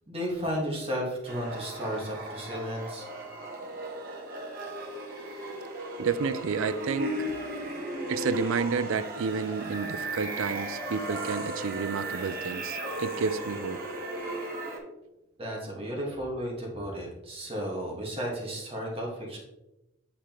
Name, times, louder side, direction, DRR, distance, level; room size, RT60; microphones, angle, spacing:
voice 1, 0.1-3.1 15.4-19.4, equal, 25° right, -3 dB, 1.6 m, -33 dB
sound 1, 1.3-14.8, right 1 dB, 45° right, 1.4 m, -36 dB
voice 2, 6.0-7.4 8.1-13.8, right 5 dB, 75° right, 12 dB, 0.4 m, -30 dB
8.5 x 4.8 x 3.0 m, 0.95 s
head